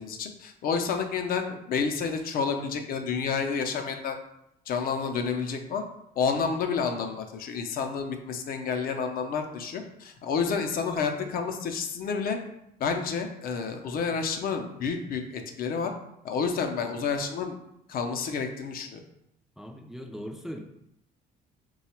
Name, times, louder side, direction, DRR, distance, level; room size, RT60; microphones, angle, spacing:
voice 1, 0.0-4.2 4.7-5.8 6.2-12.4 12.8-15.9 16.2-17.6 17.9-19.0, left 5 dB, 60° left, 5 dB, 0.6 m, -30 dB
voice 2, 19.6-20.6, equal, ahead, 2 dB, 0.4 m, -39 dB
3.8 x 2.3 x 4.3 m, 0.80 s
cardioid pair, 110°, 17 cm